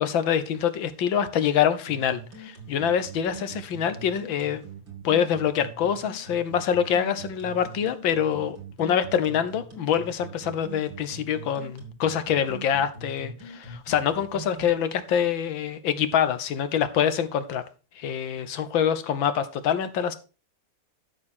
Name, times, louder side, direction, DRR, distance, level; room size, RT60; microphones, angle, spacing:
voice 1, 0.0-4.6 5.0-17.6 18.0-20.2, left 8 dB, 65° left, 1.8 m, -25 dB
sound 1, 1.9-14.7, right 5 dB, 60° right, 3.4 m, -42 dB
12.5 x 6.8 x 4.4 m
omnidirectional pair, 2.4 m